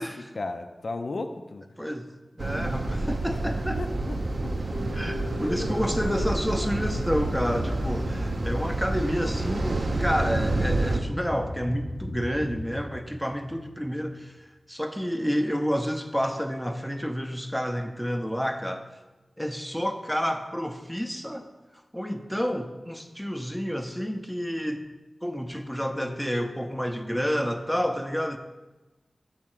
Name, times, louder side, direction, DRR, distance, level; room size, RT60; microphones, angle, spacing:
voice 1, 0.0-1.7 2.6-2.7 3.3-3.4 3.8-4.6, left 2 dB, 70° left, 6 dB, 0.4 m, -35 dB
voice 2, 2.4-3.8 4.9-14.4 14.7-18.8 19.4-21.5 21.9-24.9 25.2-28.4, equal, ahead, 5 dB, 0.6 m, -29 dB
sound 1, 2.4-11.0, right 2 dB, 60° right, 0.6 m, -29 dB
sound 2, 4.7-14.1, left 1 dB, 45° left, 0.7 m, -36 dB
6.4 x 3.6 x 6.0 m, 1.1 s
wide cardioid pair, 75°, 0 cm